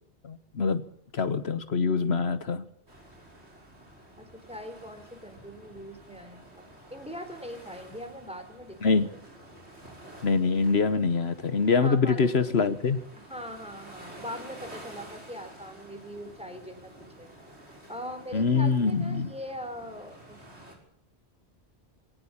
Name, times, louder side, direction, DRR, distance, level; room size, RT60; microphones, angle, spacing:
voice 1, 0.2-0.8 1.1-2.7 8.8-9.1 10.2-13.0 18.3-19.3, left 4 dB, 70° left, 12 dB, 1.4 m, -24 dB
sound 1, 2.9-20.7, right 1 dB, 80° right, 6.6 m, -50 dB
voice 2, 4.2-9.1 11.8-12.5 13.3-16.9 17.2-17.3 17.9-20.4, equal, 5° right, 6 dB, 4.0 m, -41 dB
20.5 x 18.5 x 8.8 m, 0.66 s
omnidirectional pair, 1.1 m